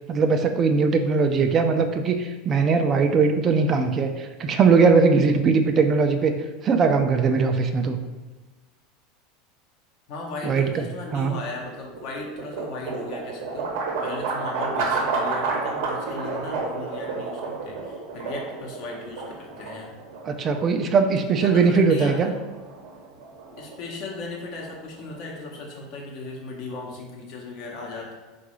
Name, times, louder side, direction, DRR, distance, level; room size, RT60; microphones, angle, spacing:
voice 1, 0.1-6.4 6.6-8.0 10.4-10.9 11.1-11.3 20.2-22.3, right 4 dB, 35° right, 7 dB, 0.3 m, -20 dB
voice 2, 10.1-19.9 21.3-22.3 23.6-28.1, left 3 dB, 60° left, -1 dB, 0.8 m, -37 dB
sound 1, 11.5-25.3, right 4 dB, 65° right, 0.8 m, -31 dB
3.8 x 2.3 x 3.0 m, 1.2 s
hypercardioid pair, 85°, 0 cm